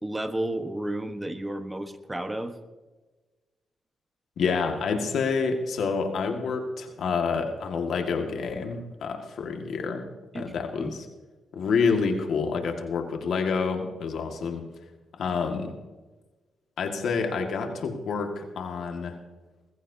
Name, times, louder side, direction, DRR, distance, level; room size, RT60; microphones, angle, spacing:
voice 1, 0.0-2.6 10.3-10.9, right 1 dB, 15° right, 9 dB, 1.2 m, -32 dB
voice 2, 4.4-10.1 10.3-11.1 11.5-14.7 15.2-15.8 16.8-19.2, left 5 dB, 75° left, 4 dB, 1.9 m, -28 dB
21.0 x 14.5 x 2.8 m, 1.2 s
cardioid pair, 70°, 0 cm